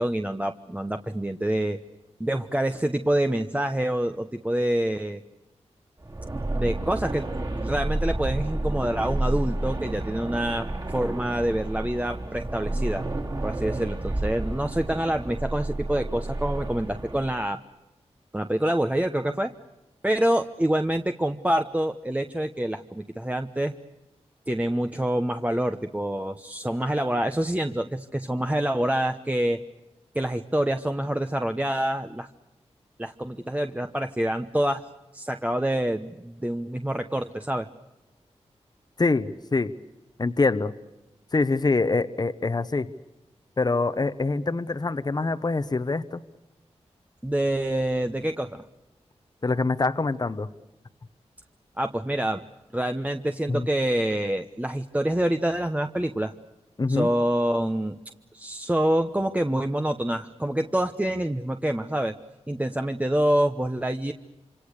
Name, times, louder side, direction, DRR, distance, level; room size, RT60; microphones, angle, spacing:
voice 1, 0.0-1.8 2.2-5.2 6.5-13.0 13.4-17.6 18.3-19.5 20.0-23.7 24.5-29.6 30.1-32.3 33.0-34.9 35.1-37.7 47.2-48.6 51.8-52.4 52.7-56.3 56.9-58.0 58.3-62.2 62.5-64.1, right 1 dB, 10° right, 7 dB, 1.0 m, -26 dB
sound 1, 6.0-17.3, right 2 dB, 35° right, 3.4 m, -30 dB
voice 2, 39.0-39.7 40.2-40.7 41.3-42.9 43.6-46.2 49.4-50.5 53.5-53.7 56.8-57.1, left 3 dB, 35° left, 11 dB, 1.0 m, -25 dB
27.0 x 26.0 x 6.7 m, 1.0 s
wide cardioid pair, 70°, 12 cm